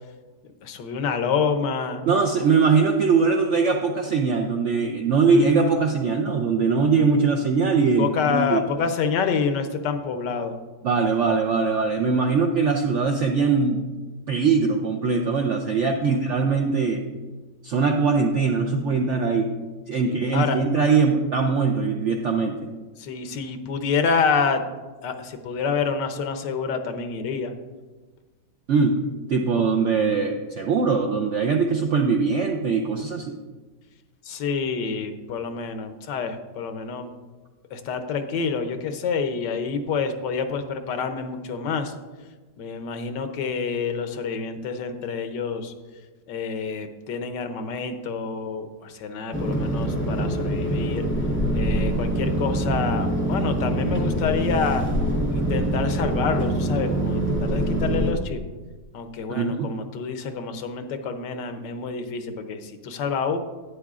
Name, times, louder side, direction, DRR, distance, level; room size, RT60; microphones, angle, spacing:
voice 1, 0.6-2.0 5.3-5.8 8.0-10.6 16.0-16.2 20.0-20.6 23.0-24.6 25.0-27.5 34.3-37.1 37.7-41.9 42.6-45.7 46.3-51.1 51.5-54.9 55.3-58.4 58.9-63.4, left 5 dB, 80° left, 8 dB, 1.4 m, -27 dB
voice 2, 2.1-8.6 10.8-13.8 14.3-17.0 17.6-19.5 19.9-22.6 28.7-29.0 29.3-33.4 59.3-59.7, right 5 dB, 75° right, 3 dB, 0.6 m, -21 dB
sound 1, 49.3-58.1, right 1 dB, 15° left, 0.4 m, -24 dB
11.5 x 9.1 x 2.4 m, 1.3 s
omnidirectional pair, 1.9 m